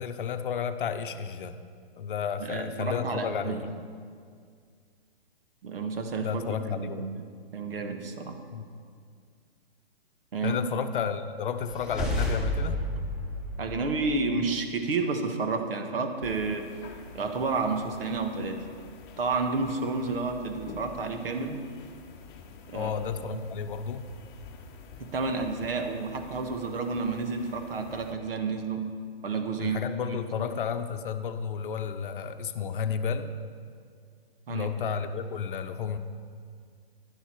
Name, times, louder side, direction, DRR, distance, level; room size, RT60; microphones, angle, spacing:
voice 1, 0.0-1.6 2.0-3.7 6.2-7.1 8.5-8.6 10.4-12.8 22.7-24.1 29.6-33.4 34.5-36.0, left 7 dB, 60° left, 9 dB, 0.8 m, -32 dB
voice 2, 2.4-3.6 5.6-7.2 7.5-8.4 10.3-10.6 13.6-16.6 17.1-18.6 19.2-21.6 22.7-22.9 23.3-23.4 25.0-28.9 29.2-29.8 30.3-30.5 34.5-34.7, right 4 dB, 65° right, 6 dB, 1.5 m, -30 dB
sound 1, 11.6-14.4, left 1 dB, ahead, 1.2 m, -31 dB
sound 2, 16.2-28.1, left 5 dB, 25° left, 0.9 m, -48 dB
11.5 x 10.5 x 4.5 m, 2.1 s
hypercardioid pair, 140°, 30 cm